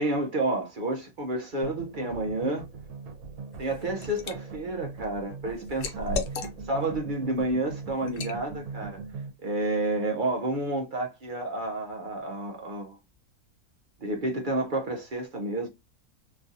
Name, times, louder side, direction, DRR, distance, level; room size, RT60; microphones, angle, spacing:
voice 1, 0.0-2.6 3.6-9.0 9.4-13.0 14.0-15.7, right 2 dB, 55° right, 0.6 m, -30 dB
sound 1, 1.6-9.3, right 4 dB, 75° right, 1.3 m, -40 dB
Liquid, 3.5-4.4 4.8-6.9 7.3-7.5 8.1-8.4, left 3 dB, 65° left, 0.9 m, -35 dB
3.1 x 2.5 x 2.6 m
omnidirectional pair, 1.6 m